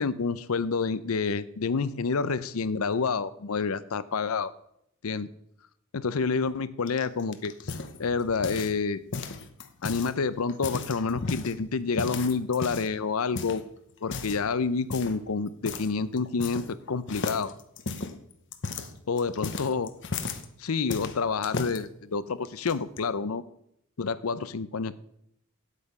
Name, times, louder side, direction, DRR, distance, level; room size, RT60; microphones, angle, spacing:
voice 1, 0.0-4.5 5.0-5.3 5.9-9.0 9.8-13.6 14.0-17.5 19.1-19.9 20.6-23.4 24.0-25.0, left 4 dB, 85° left, 16 dB, 0.6 m, -28 dB
sound 1, 6.9-8.8 9.1-10.1 10.5-11.5 12.0-13.0 13.4-13.6 14.0-14.4 14.9-15.2 15.7-15.9 16.2-16.8 17.1-20.5 20.9-21.8 22.5-23.0, left 4 dB, 55° left, 0.9 m, -35 dB
9.6 x 8.3 x 5.5 m, 0.74 s
head